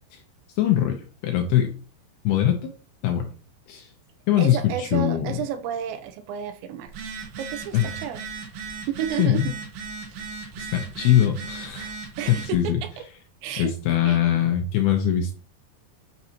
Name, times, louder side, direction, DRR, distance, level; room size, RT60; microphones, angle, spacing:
voice 1, 0.6-1.0 1.2-1.7 2.2-2.7 3.0-3.3 3.7-3.9 4.3-5.3 7.7-7.9 9.2-9.5 10.6-11.9 12.3-12.8 13.6-15.3, left 11 dB, 75° left, 3 dB, 2.3 m, -22 dB
voice 2, 4.4-8.2 8.9-9.6 10.1-10.2 11.0-11.1 12.2-12.9 13.4-13.7 14.0-14.2, right 9 dB, 85° right, 9 dB, 2.9 m, -31 dB
Telephone, 6.9-12.5, right 5 dB, 70° right, 3.1 m, -37 dB
9.2 x 5.4 x 2.9 m, 0.38 s
omnidirectional pair, 5.2 m